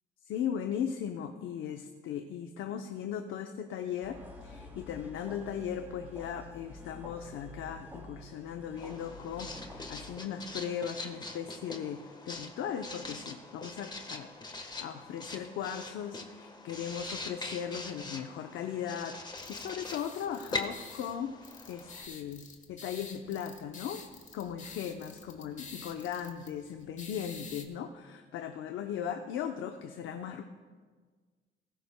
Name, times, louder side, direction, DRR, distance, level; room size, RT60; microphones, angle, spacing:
voice 1, 0.3-21.4 21.7-24.0 24.3-30.4, left 8 dB, 85° left, 5 dB, 0.7 m, -38 dB
sound 1, 4.0-10.2, left 2 dB, 10° right, 3.0 m, -49 dB
Writing, 8.8-22.0, left 3 dB, 20° left, 1.3 m, -43 dB
sound 2, 19.4-27.6, left 4 dB, 40° left, 1.5 m, -49 dB
18.0 x 15.5 x 2.2 m, 1.5 s
cardioid pair, 90°, 20 cm